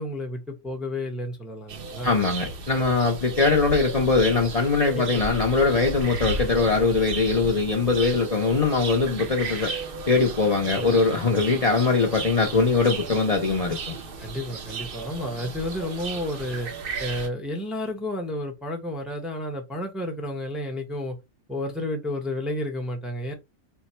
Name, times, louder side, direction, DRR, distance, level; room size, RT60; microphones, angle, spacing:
voice 1, 0.0-2.2 4.9-5.2 10.7-10.9 14.2-16.7 17.0-21.2 21.5-23.3, left 1 dB, ahead, 0.7 m, -31 dB
sound 1, 1.7-17.3, right 3 dB, 50° right, 0.7 m, -34 dB
voice 2, 2.0-9.7 10.1-14.0, left 4 dB, 35° left, 0.6 m, -22 dB
4.4 x 2.1 x 4.2 m
omnidirectional pair, 1.5 m